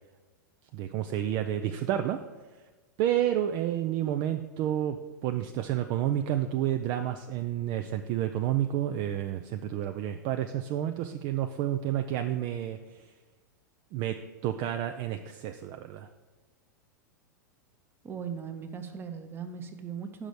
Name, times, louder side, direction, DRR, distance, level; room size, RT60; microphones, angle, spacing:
voice 1, 0.7-2.2 3.0-13.1 13.9-14.2 14.4-16.1, right 11 dB, 40° right, 7 dB, 0.4 m, -30 dB
voice 2, 18.0-20.3, right 7 dB, 20° right, 7 dB, 0.8 m, -38 dB
6.1 x 5.1 x 6.8 m, 1.3 s
figure-of-eight pair, 95°, 10 cm